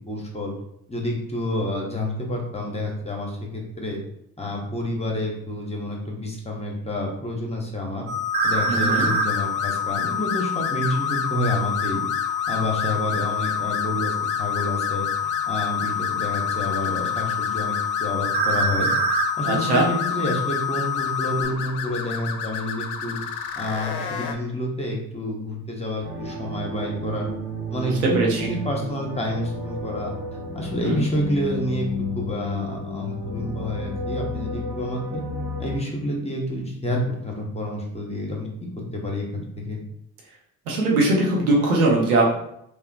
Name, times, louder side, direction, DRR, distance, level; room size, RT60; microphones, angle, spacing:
voice 1, 0.1-0.5 0.9-4.0 4.4-8.1 8.4-12.0 12.5-17.7 18.0-18.9 19.4-23.2 23.6-27.3 27.7-30.1 30.5-31.9 32.2-35.2 35.6-39.8, left 1 dB, 15° left, -1 dB, 0.8 m, -29 dB
sound 1, 8.1-21.5, left 3 dB, 20° right, 0.6 m, -26 dB
sound 2, 8.4-24.3, left 6 dB, 65° left, 0.5 m, -32 dB
voice 2, 8.7-9.1 19.4-19.9 27.9-28.5 30.9-31.0 40.7-42.4, right 2 dB, 85° right, -3 dB, 0.6 m, -21 dB
sound 3, 26.0-35.8, left 1 dB, 55° right, 1.1 m, -32 dB
2.8 x 2.1 x 2.5 m, 0.75 s
hypercardioid pair, 40°, 43 cm